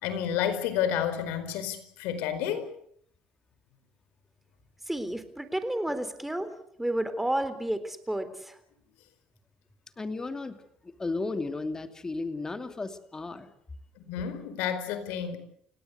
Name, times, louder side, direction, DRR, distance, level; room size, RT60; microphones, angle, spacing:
voice 1, 0.0-2.7 14.1-15.4, left 9 dB, 85° left, 11 dB, 4.7 m, -30 dB
voice 2, 4.8-8.6, right 1 dB, 5° right, 11 dB, 3.7 m, -31 dB
voice 3, 10.0-13.5, left 3 dB, 20° left, 8 dB, 2.8 m, -34 dB
30.0 x 17.5 x 8.2 m, 0.68 s
cardioid pair, 105°, 3 cm